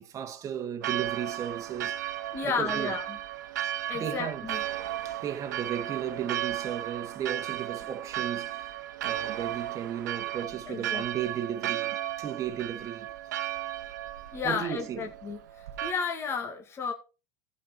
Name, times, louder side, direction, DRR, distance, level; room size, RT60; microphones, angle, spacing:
voice 1, 0.0-2.9 3.9-4.5 5.0-8.7 9.0-13.1 14.4-15.0, right 9 dB, 35° right, 1.5 m, -35 dB
Church bell, 0.8-15.9, right 13 dB, 90° right, 1.0 m, -35 dB
voice 2, 2.3-3.2 3.9-4.6 10.7-11.1 14.3-15.4 15.8-16.9, left 5 dB, 25° left, 2.1 m, -32 dB
14.5 x 5.6 x 4.5 m
supercardioid pair, 115°, 10 cm